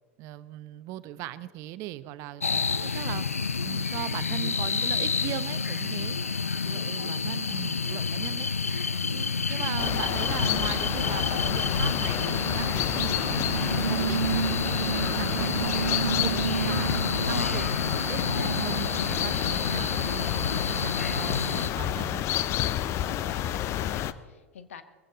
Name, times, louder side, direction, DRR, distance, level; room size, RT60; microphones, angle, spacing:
voice 1, 0.2-3.3 3.6-6.2 6.6-14.2 14.6-16.9 17.3-22.2, right 15 dB, 45° right, 14 dB, 0.9 m, -39 dB
sound 1, 2.4-21.7, left 5 dB, 85° left, 0.5 m, -29 dB
voice 2, 6.7-7.6 23.1-24.8, left 8 dB, 70° left, 11 dB, 1.4 m, -47 dB
sound 2, 9.8-24.1, left 12 dB, 40° left, 0.7 m, -30 dB
sound 3, 12.3-20.1, right 8 dB, 75° right, 0.5 m, -32 dB
21.5 x 15.5 x 4.1 m, 1.4 s
figure-of-eight pair, 90°, 7 cm